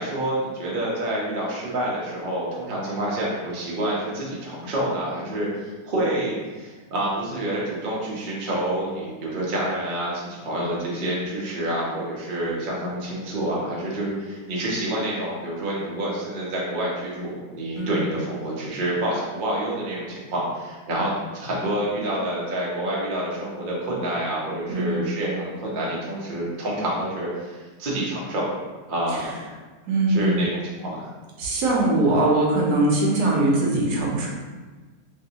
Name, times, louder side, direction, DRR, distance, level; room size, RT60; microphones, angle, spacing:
voice 1, 0.0-28.5 28.9-29.4 30.1-31.1, right 1 dB, 45° right, -5 dB, 0.6 m, -28 dB
voice 2, 17.7-18.1 24.7-25.1 29.9-30.4 31.4-34.3, right 2 dB, 75° right, -3 dB, 1.1 m, -21 dB
3.3 x 2.6 x 2.8 m, 1.3 s
omnidirectional pair, 1.8 m